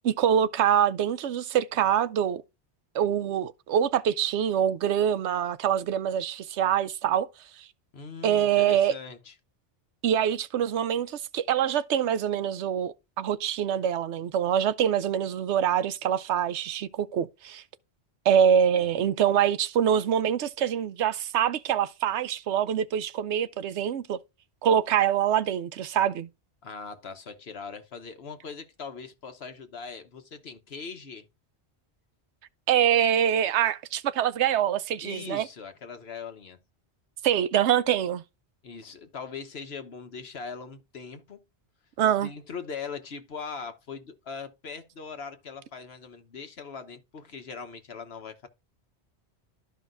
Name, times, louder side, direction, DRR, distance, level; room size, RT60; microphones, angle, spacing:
voice 1, 0.0-2.4 2.9-7.3 7.6-7.7 8.2-8.9 10.0-17.6 18.3-24.2 24.6-26.3 32.7-35.5 37.2-38.2 42.0-42.3, right 9 dB, 85° right, 0.9 m, -25 dB
voice 2, 7.9-9.3 18.7-18.9 26.6-31.3 35.0-36.6 38.6-41.4 42.2-48.5, left 5 dB, 70° left, 1.4 m, -40 dB
13.0 x 5.1 x 2.5 m
omnidirectional pair, 1.1 m